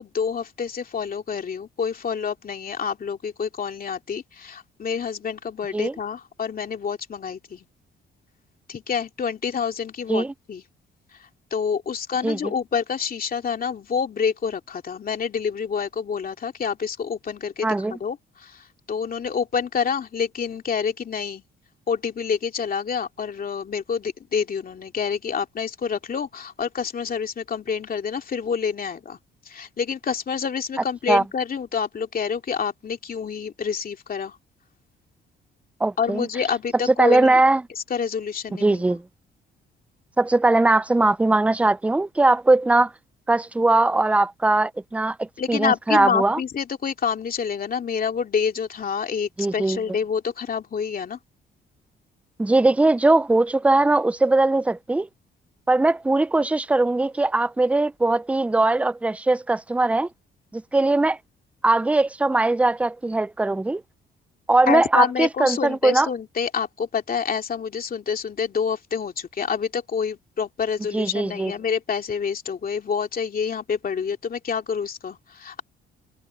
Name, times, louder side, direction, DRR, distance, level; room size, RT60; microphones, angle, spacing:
voice 1, 0.0-7.6 8.7-10.6 11.5-21.4 21.9-29.2 29.5-34.4 36.0-37.4 37.9-38.8 45.4-51.2 64.7-75.6, left 6 dB, 45° left, 2.7 m, -27 dB
voice 2, 17.6-18.0 31.1-31.2 35.8-36.3 37.0-37.6 38.6-39.0 40.2-42.9 43.3-46.4 49.4-49.8 52.4-55.1 55.7-60.1 60.5-61.2 61.6-63.8 64.5-66.1 70.9-71.5, right 2 dB, 5° right, 0.4 m, -20 dB
cardioid pair, 90°, 20 cm